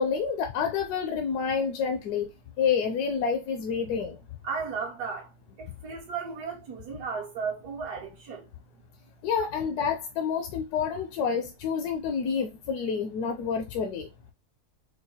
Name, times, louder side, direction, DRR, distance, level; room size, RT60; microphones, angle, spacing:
voice 1, 0.0-2.3 2.6-4.2 9.2-14.1, left 6 dB, 75° left, 1.1 m, -28 dB
voice 2, 4.4-5.3 5.6-8.5, right 5 dB, 70° right, 1.3 m, -35 dB
4.5 x 2.2 x 2.7 m
omnidirectional pair, 1.7 m